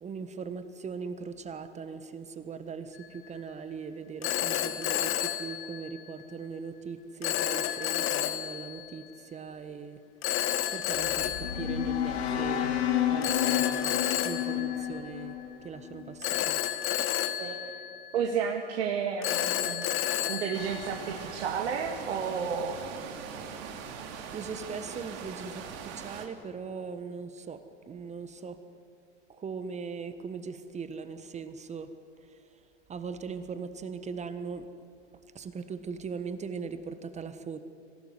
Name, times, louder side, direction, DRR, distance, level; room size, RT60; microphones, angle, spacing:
voice 1, 0.0-9.0 9.3-10.0 10.7-12.8 13.1-13.9 14.2-15.3 15.6-16.6 24.3-27.6 27.9-28.6 29.3-31.9 32.9-34.6 35.3-37.6, right 5 dB, 20° right, 11 dB, 1.3 m, -39 dB
Telephone, 2.9-3.3 4.2-6.2 7.2-8.9 10.2-12.4 13.2-15.5 16.2-18.5 19.2-21.4, left 12 dB, 35° left, 1.6 m, -31 dB
sound 1, 10.9-16.1, left 10 dB, 65° left, 2.6 m, -31 dB
voice 2, 17.4-17.8 18.1-19.9 20.3-22.9, right 7 dB, 65° right, 3 dB, 2.4 m, -32 dB
sound 2, 20.5-26.3, right 7 dB, 45° right, 3.3 m, -41 dB
25.0 x 18.0 x 9.8 m, 2.4 s
hypercardioid pair, 105°, 35 cm